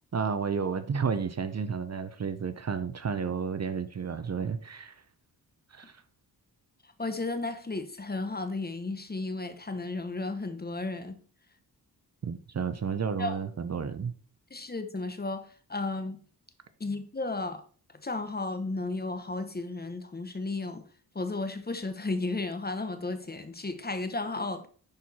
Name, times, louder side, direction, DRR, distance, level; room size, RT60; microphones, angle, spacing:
voice 1, 0.1-5.0 5.7-6.0 12.2-14.1, right 6 dB, 40° right, 0.7 m, -31 dB
voice 2, 7.0-11.2 13.2-13.4 14.5-16.2 16.8-17.6 18.0-20.8 21.1-24.7, left 3 dB, 25° left, 1.0 m, -34 dB
10.5 x 4.6 x 4.2 m
wide cardioid pair, 95°, 38 cm